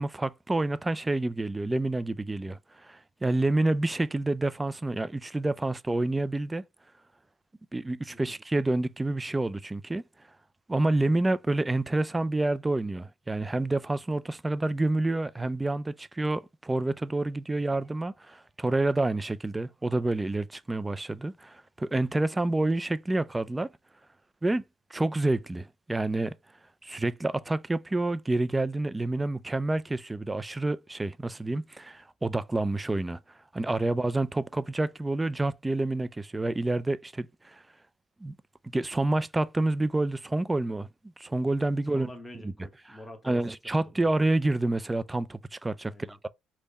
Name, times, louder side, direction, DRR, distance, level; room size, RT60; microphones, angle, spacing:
voice 1, 0.0-6.6 7.7-10.0 10.7-23.7 24.4-24.6 24.9-26.3 26.8-33.2 33.5-37.6 38.2-38.4 38.7-40.9 41.2-42.1 42.4-42.5 43.3-46.3, right 2 dB, 15° right, 0.3 m, -28 dB
voice 2, 41.9-43.4 44.0-44.1 45.9-46.2, left 1 dB, 10° left, 1.0 m, -46 dB
3.4 x 2.1 x 3.8 m
cardioid pair, 105°, 0 cm